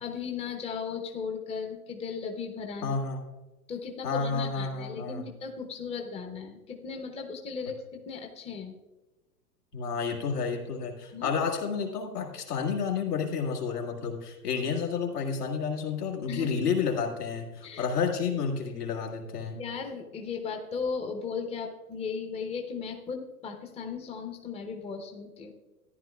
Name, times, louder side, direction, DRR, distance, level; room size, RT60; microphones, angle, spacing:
voice 1, 0.0-2.9 3.7-8.8 11.1-11.3 16.3-16.5 17.6-17.9 19.5-25.5, left 5 dB, 15° left, 3 dB, 0.8 m, -36 dB
voice 2, 2.8-3.2 4.0-5.3 9.7-19.6, left 5 dB, 75° left, 0 dB, 2.0 m, -30 dB
14.0 x 10.5 x 2.3 m, 1.1 s
figure-of-eight pair, 100°, 46 cm